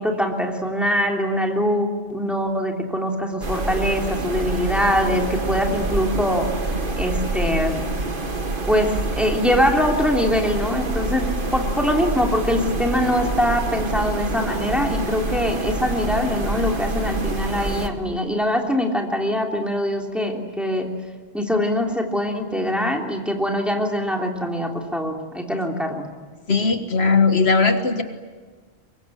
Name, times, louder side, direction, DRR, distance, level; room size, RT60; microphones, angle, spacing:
voice 1, 0.0-6.5 7.0-7.8 8.7-20.9 21.3-26.1, equal, ahead, 1 dB, 3.1 m, -23 dB
sound 1, 3.4-17.9, right 2 dB, 50° right, 2.0 m, -26 dB
voice 2, 26.5-28.0, left 4 dB, 75° left, 7 dB, 1.9 m, -18 dB
24.5 x 22.5 x 10.0 m, 1.5 s
omnidirectional pair, 1.1 m